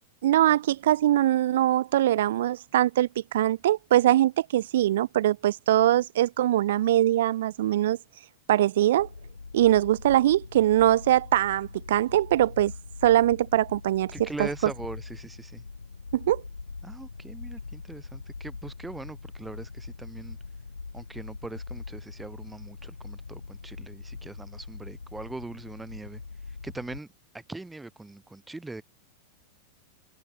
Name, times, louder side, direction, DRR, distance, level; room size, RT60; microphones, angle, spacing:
voice 1, 0.2-8.0 8.5-9.1 9.5-12.7 13.0-14.5 16.1-16.4, right 13 dB, 60° right, 0.4 m, -22 dB
sound 1, 9.0-27.0, left 4 dB, 80° left, 2.2 m, -42 dB
voice 2, 14.1-15.6 16.8-20.4 20.9-26.2 26.5-27.1 27.3-28.8, right 2 dB, 5° right, 6.4 m, -41 dB
open air
figure-of-eight pair, 90°, 0 cm